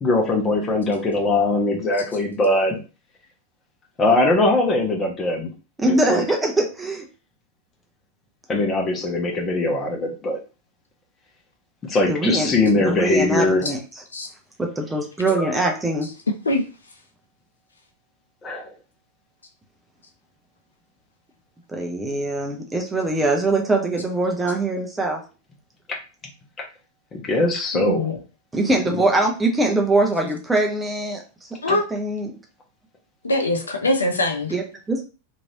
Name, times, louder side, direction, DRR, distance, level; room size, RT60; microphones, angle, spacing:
voice 1, 0.0-2.8 4.0-5.5 5.8-6.3 8.5-10.4 11.8-13.7 15.3-15.6 18.4-18.7 25.9-26.0 27.1-28.1, left 2 dB, 25° left, 1 dB, 0.9 m, -21 dB
voice 2, 5.8-7.0 12.1-12.5 12.8-13.8 14.6-16.1 21.7-25.2 28.5-32.3 34.5-35.0, right 2 dB, 10° right, 2 dB, 0.7 m, -22 dB
voice 3, 27.8-28.2 31.6-31.9 33.2-34.5, left 1 dB, 75° left, 5 dB, 0.5 m, -22 dB
3.0 x 2.6 x 2.8 m, 0.33 s
figure-of-eight pair, 90°, 0 cm